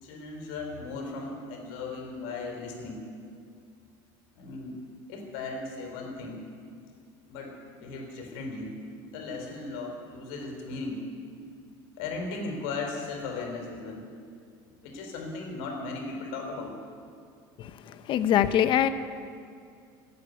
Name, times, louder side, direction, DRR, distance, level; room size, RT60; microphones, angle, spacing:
voice 1, 0.0-3.1 4.4-4.8 5.1-6.4 7.3-8.8 9.1-11.1 12.0-14.1 14.8-16.8, left 3 dB, 75° left, 2 dB, 4.0 m, -37 dB
voice 2, 17.6-18.9, left 10 dB, 50° left, 11 dB, 0.8 m, -24 dB
15.0 x 8.9 x 9.5 m, 2.4 s
supercardioid pair, 115°, 11 cm